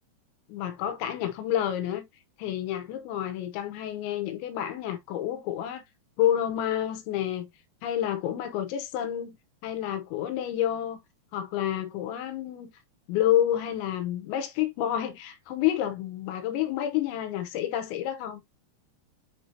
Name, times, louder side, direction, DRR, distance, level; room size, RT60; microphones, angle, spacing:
voice 1, 0.5-2.1 2.4-5.8 6.2-7.5 7.8-9.4 9.6-11.0 11.3-12.7 13.1-18.4, left 11 dB, 85° left, 3.2 m, -29 dB
8.4 x 4.4 x 2.7 m
omnidirectional pair, 5.3 m